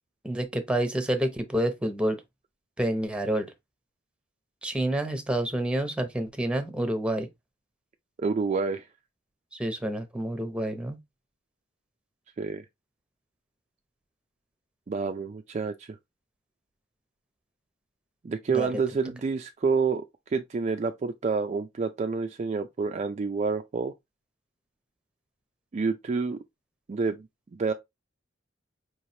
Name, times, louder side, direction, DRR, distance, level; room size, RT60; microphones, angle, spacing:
voice 1, 0.2-2.2 2.8-3.5 4.6-7.3 9.5-11.0 18.5-18.8, right 1 dB, 5° right, 0.8 m, -28 dB
voice 2, 8.2-8.8 12.4-12.6 14.9-15.9 18.2-20.0 20.3-23.9 25.7-26.4 26.9-27.3 27.5-27.7, right 4 dB, 35° right, 0.4 m, -28 dB
4.9 x 3.1 x 2.7 m
head